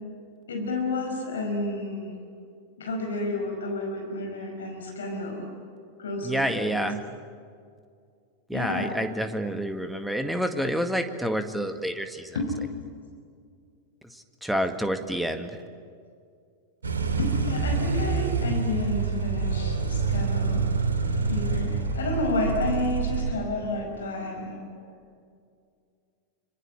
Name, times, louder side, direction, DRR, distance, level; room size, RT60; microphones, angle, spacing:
voice 1, 0.5-2.2 2.8-5.5 6.0-6.8 8.5-9.0 12.4-12.5 17.2-20.7 21.3-24.9, left 2 dB, 65° left, 2 dB, 5.2 m, -30 dB
voice 2, 6.2-7.0 8.5-12.4 14.4-15.5, equal, ahead, 7 dB, 1.9 m, -28 dB
sound 1, 16.8-23.3, right 4 dB, 70° right, 3.3 m, -27 dB
26.0 x 25.5 x 8.6 m, 2.3 s
figure-of-eight pair, 90°, 0 cm